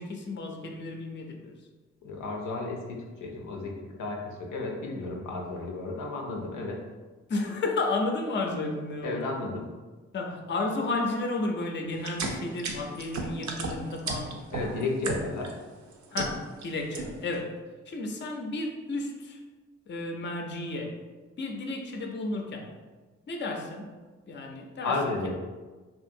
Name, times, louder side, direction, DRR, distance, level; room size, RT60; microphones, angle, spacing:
voice 1, 0.0-1.5 7.3-9.5 10.1-14.4 16.1-17.6 17.9-19.4 19.9-21.0 21.4-22.7 23.3-23.9 24.3-25.0, left 2 dB, 40° left, 2 dB, 0.5 m, -32 dB
voice 2, 2.0-6.8 9.0-9.7 14.5-15.5 24.8-25.4, left 3 dB, 85° left, 0 dB, 0.5 m, -33 dB
sound 1, 12.0-15.5 15.9-16.7 16.9-17.4, right 3 dB, 65° right, 0.5 m, -33 dB
2.6 x 2.4 x 2.6 m, 1.3 s
supercardioid pair, 40°, 30 cm